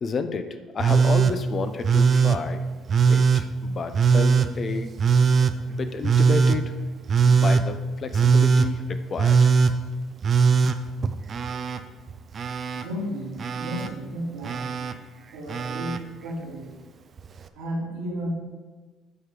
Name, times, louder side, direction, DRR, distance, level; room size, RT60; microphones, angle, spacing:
voice 1, 0.0-2.6 3.1-4.9 5.7-6.8 7.3-9.5, left 5 dB, 45° left, 9 dB, 0.6 m, -31 dB
Telephone, 0.8-1.3 1.8-2.4 2.9-3.4 3.9-4.5 5.0-5.5 6.0-6.6 7.1-7.6 8.1-8.7 9.2-9.7 10.2-11.8 12.1-12.8 13.4-13.9 14.4-14.9 15.5-16.0 17.2-17.3, right 5 dB, 45° right, 0.5 m, -20 dB
voice 2, 12.7-14.8 15.3-16.6 17.5-18.3, equal, 85° right, -4 dB, 2.4 m, -33 dB
8.1 x 5.0 x 4.9 m, 1.3 s
supercardioid pair, 75°, 0 cm